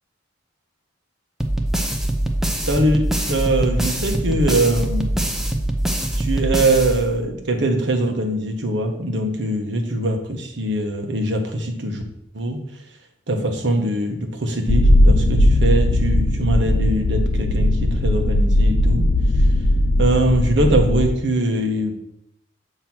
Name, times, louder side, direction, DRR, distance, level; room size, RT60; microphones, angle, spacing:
sound 1, 1.4-7.5, right 1 dB, ahead, 0.5 m, -23 dB
voice 1, 2.7-5.2 6.2-12.0 12.3-12.6 13.3-19.1 20.0-22.0, right 1 dB, 65° right, 3 dB, 1.0 m, -22 dB
sound 2, 14.7-21.1, left 1 dB, 50° left, 0.5 m, -17 dB
7.1 x 2.9 x 6.0 m, 0.79 s
head